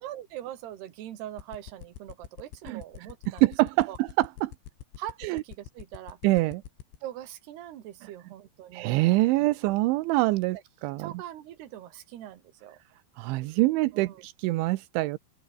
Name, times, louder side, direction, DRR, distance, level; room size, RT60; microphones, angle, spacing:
voice 1, 0.0-3.4 3.9-4.0 5.0-6.2 7.0-8.9 9.4-9.6 11.0-12.8 13.9-14.3, right 12 dB, 65° right, 3.8 m, -42 dB
sound 1, 1.4-7.0, left 10 dB, 75° left, 4.7 m, -43 dB
voice 2, 3.3-4.5 5.2-5.4 6.2-6.6 8.7-10.6 10.8-11.1 13.2-15.2, right 20 dB, 85° right, 3.2 m, -25 dB
open air
omnidirectional pair, 5.4 m